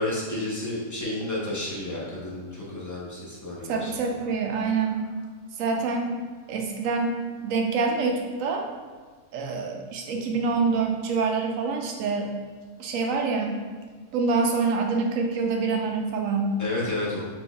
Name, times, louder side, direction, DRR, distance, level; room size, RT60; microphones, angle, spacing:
voice 1, 0.0-3.9 16.6-17.2, left 2 dB, 15° left, -6 dB, 0.7 m, -31 dB
voice 2, 3.7-5.1 5.6-6.1 6.5-8.6 9.3-12.3 12.8-13.6 14.1-16.5, right 4 dB, 90° right, 2 dB, 1.0 m, -26 dB
4.2 x 3.9 x 2.3 m, 1.5 s
omnidirectional pair, 1.4 m